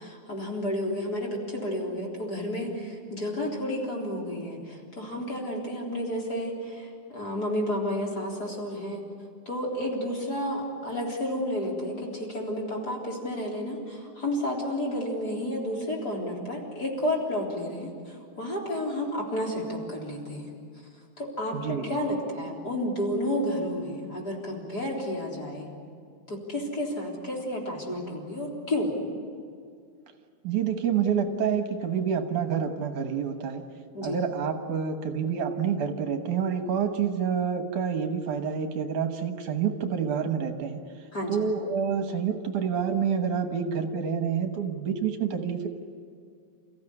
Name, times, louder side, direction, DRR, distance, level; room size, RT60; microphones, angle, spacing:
voice 1, 0.0-9.0 9.5-20.5 21.2-25.7 26.3-28.9 33.9-34.2 41.1-41.4, left 1 dB, 25° left, -1 dB, 4.0 m, -31 dB
voice 2, 21.5-22.0 30.4-33.7 34.0-40.8 41.3-45.7, right 7 dB, 65° right, 5 dB, 2.6 m, -28 dB
28.5 x 16.0 x 9.7 m, 2.2 s
omnidirectional pair, 4.0 m